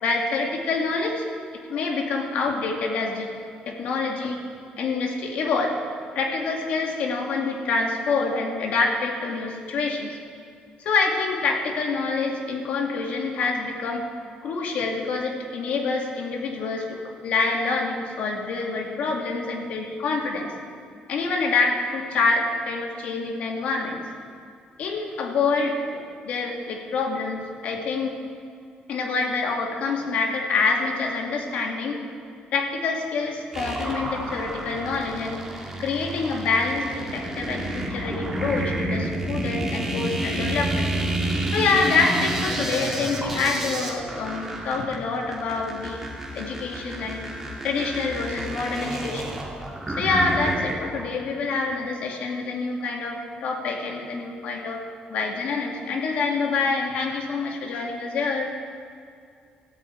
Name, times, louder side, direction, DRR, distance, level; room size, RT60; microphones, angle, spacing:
voice 1, 0.0-1.2 1.7-3.3 3.7-4.4 4.8-5.8 6.1-10.2 10.8-14.0 14.4-20.5 21.1-24.0 24.8-28.2 28.9-32.0 32.5-35.4 35.8-40.9 41.5-46.0 46.4-47.2 47.6-49.4 50.0-54.8 55.1-58.5, left 4 dB, 55° left, 2 dB, 2.2 m, -26 dB
sound 1, 33.5-51.0, right 1 dB, 10° right, 2.4 m, -30 dB
17.0 x 14.0 x 4.6 m, 2.3 s
cardioid pair, 160°, 3 cm